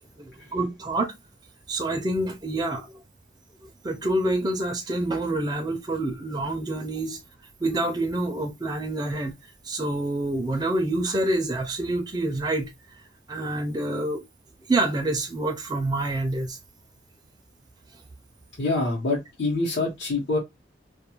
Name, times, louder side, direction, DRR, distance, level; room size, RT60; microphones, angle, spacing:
voice 1, 0.2-1.1 1.7-2.9 3.8-7.2 7.6-9.3 9.6-12.7 13.3-14.2 14.7-16.6, right 2 dB, 20° right, 0.4 m, -27 dB
voice 2, 18.6-20.4, left 2 dB, 70° left, 0.9 m, -25 dB
2.3 x 2.3 x 2.9 m
head